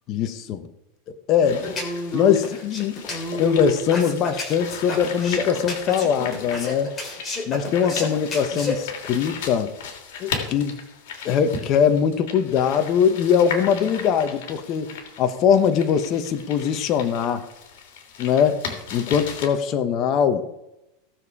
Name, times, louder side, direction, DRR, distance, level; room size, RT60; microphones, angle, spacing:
voice 1, 0.1-0.7 1.1-1.7 2.1-3.0 3.3-6.9 7.5-9.7 10.2-10.8 11.2-17.4 18.2-18.6 18.9-20.5, left 7 dB, 40° left, 8 dB, 1.1 m, -21 dB
sound 1, 1.4-19.5, left 6 dB, 70° left, 3.4 m, -37 dB
sound 2, 1.6-8.7, left 2 dB, 20° left, 3.6 m, -29 dB
18.0 x 7.1 x 4.9 m, 0.90 s
supercardioid pair, 140°, 0 cm